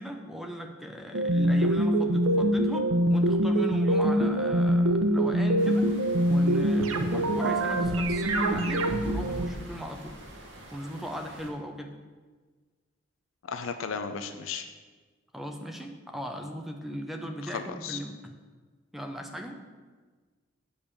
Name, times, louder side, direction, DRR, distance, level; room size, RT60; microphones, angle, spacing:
voice 1, 0.0-5.9 6.3-10.1 10.7-11.9 15.3-18.3 18.9-19.6, equal, ahead, 3 dB, 0.7 m, -37 dB
sound 1, 1.1-9.5, right 1 dB, 90° right, 0.8 m, -24 dB
sound 2, 5.6-11.5, right 1 dB, 60° right, 1.7 m, -46 dB
voice 2, 13.4-14.7 17.4-18.0, left 5 dB, 80° left, 9 dB, 0.6 m, -35 dB
8.7 x 5.5 x 6.8 m, 1.4 s
head